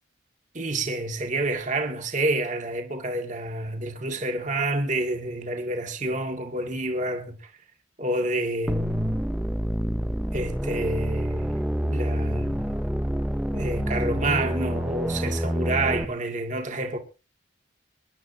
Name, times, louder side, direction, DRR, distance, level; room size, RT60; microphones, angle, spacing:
voice 1, 0.5-7.4 8.0-9.3 10.3-12.8 13.5-17.0, right 2 dB, 40° right, 2.0 m, -28 dB
sound 1, 8.7-16.0, equal, 5° right, 0.6 m, -27 dB
24.5 x 11.5 x 2.8 m
head